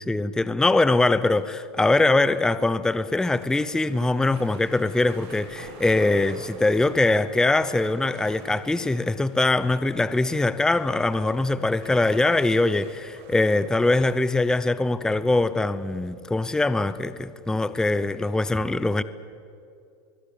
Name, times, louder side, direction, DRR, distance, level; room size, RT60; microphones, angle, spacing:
voice 1, 0.0-19.0, left 2 dB, 5° left, 0.6 m, -22 dB
sound 1, 1.3-2.0 2.3-2.5 3.0-3.1 3.4-14.2, right 4 dB, 50° right, 7.0 m, -46 dB
23.0 x 21.0 x 8.8 m
supercardioid pair, 130°, 13 cm